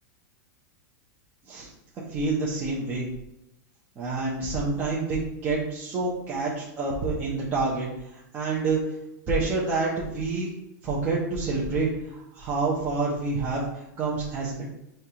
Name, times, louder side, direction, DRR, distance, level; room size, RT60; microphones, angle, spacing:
voice 1, 2.1-3.1 4.0-8.8 9.3-10.5 10.8-14.7, right 3 dB, 20° right, -5 dB, 0.6 m, -28 dB
6.4 x 2.3 x 2.8 m, 0.87 s
supercardioid pair, 165°, 10 cm